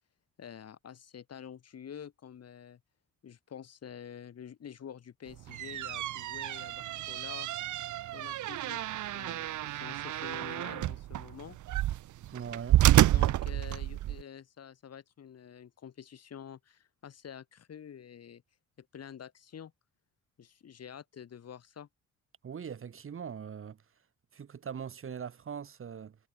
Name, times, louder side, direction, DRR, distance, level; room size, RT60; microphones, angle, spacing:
voice 1, 0.4-2.8 3.2-7.5 8.1-11.6 13.1-18.4 18.8-19.7 20.4-21.9, left 8 dB, 55° left, 5.7 m, -48 dB
sound 1, 5.3-14.2, right 14 dB, 75° right, 1.3 m, -29 dB
voice 2, 12.3-12.8 22.4-23.8 24.3-26.2, right 7 dB, 45° right, 2.0 m, -41 dB
cardioid pair, 90°, 30 cm